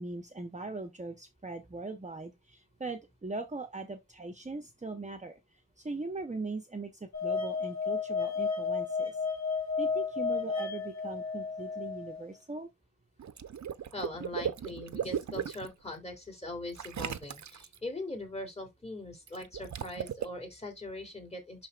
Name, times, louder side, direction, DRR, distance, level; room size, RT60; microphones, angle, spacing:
voice 1, 0.0-5.4 5.8-9.2 9.8-12.7, right 3 dB, 20° right, 0.9 m, -40 dB
sound 1, 7.1-12.2, left 5 dB, 50° left, 2.3 m, -32 dB
Water / Liquid, 13.2-15.7 16.8-17.8 19.3-20.3, right 8 dB, 55° right, 0.8 m, -36 dB
voice 2, 13.9-21.7, left 1 dB, 20° left, 3.3 m, -41 dB
11.5 x 4.2 x 2.4 m
wide cardioid pair, 120°, 34 cm